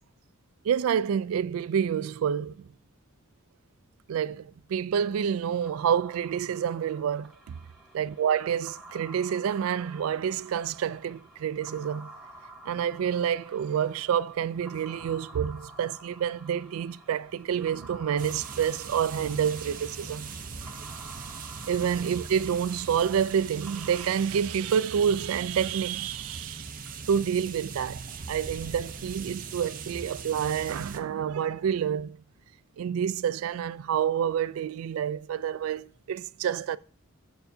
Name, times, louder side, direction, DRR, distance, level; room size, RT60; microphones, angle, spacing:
voice 1, 0.6-2.7 4.1-7.6 7.9-12.1 12.7-20.3 21.7-26.7 27.1-32.2 32.8-36.8, right 8 dB, 85° right, 0.3 m, -28 dB
sound 1, 5.6-24.1, right 1 dB, ahead, 1.2 m, -50 dB
sound 2, 18.2-31.0, right 5 dB, 40° right, 0.6 m, -40 dB
6.7 x 6.7 x 2.7 m
head